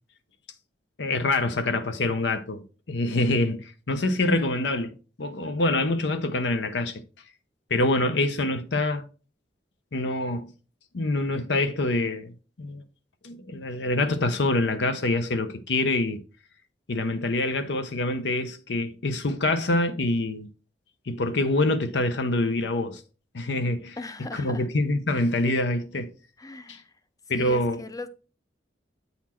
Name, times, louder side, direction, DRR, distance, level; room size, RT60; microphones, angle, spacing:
voice 1, 1.0-7.0 7.7-9.0 9.9-10.5 10.9-12.3 12.6-12.8 13.2-16.2 16.9-20.5 21.1-23.0 23.3-24.0 24.3-26.1 26.7-26.8 27.3-27.8, left 2 dB, 70° left, 0.7 m, -25 dB
voice 2, 24.0-24.7 26.4-26.9 27.3-28.1, left 3 dB, 20° left, 0.5 m, -39 dB
8.3 x 4.2 x 4.3 m
head